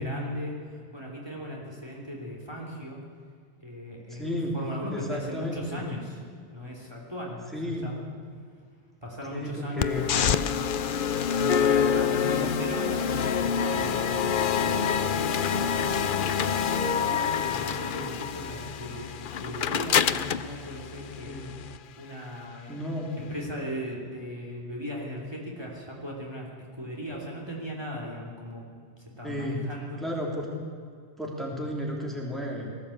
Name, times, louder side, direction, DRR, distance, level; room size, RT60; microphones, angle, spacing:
voice 1, 0.0-3.0 3.6-6.2 6.5-8.1 9.0-10.3 11.3-13.3 13.7-21.4 22.0-26.5 26.8-28.6 29.0-30.0, equal, 20° right, -2 dB, 3.2 m, -38 dB
voice 2, 4.1-4.5 4.9-5.8 7.5-7.9 9.3-10.1 12.2-12.5 17.5-17.7 21.3-21.5 22.7-23.3 29.2-29.6 30.0-30.5 31.2-32.7, equal, ahead, -2 dB, 3.1 m, -33 dB
sound 1, 9.8-21.8, left 7 dB, 55° left, 0.7 m, -26 dB
20.0 x 15.5 x 8.5 m, 2.1 s
omnidirectional pair, 1.1 m